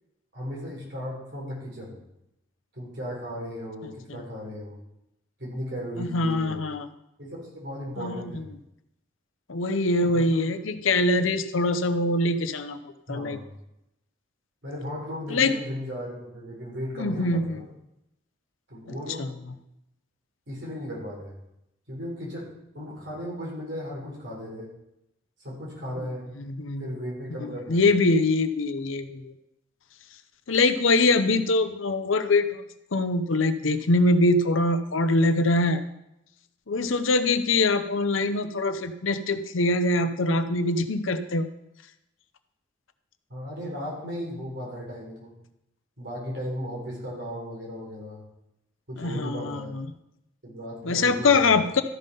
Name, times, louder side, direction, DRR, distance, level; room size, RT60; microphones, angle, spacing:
voice 1, 0.3-2.0 2.7-4.8 5.4-6.7 7.2-8.5 10.1-10.4 13.1-13.5 14.6-17.7 18.7-19.3 20.5-21.4 21.9-22.5 22.7-24.7 25.4-26.3 26.8-27.9 43.3-45.3 46.0-48.2 48.9-49.8 50.4-51.7, equal, 60° right, -3 dB, 3.9 m, -36 dB
voice 2, 6.0-6.9 8.0-8.3 9.5-12.8 13.1-13.4 15.3-15.5 17.0-17.6 19.2-19.3 26.5-26.9 27.4-29.3 30.5-32.6 32.9-35.8 36.7-41.5 49.0-49.9 50.8-51.8, left 2 dB, 90° left, 10 dB, 0.8 m, -23 dB
13.5 x 5.5 x 5.4 m, 0.84 s
head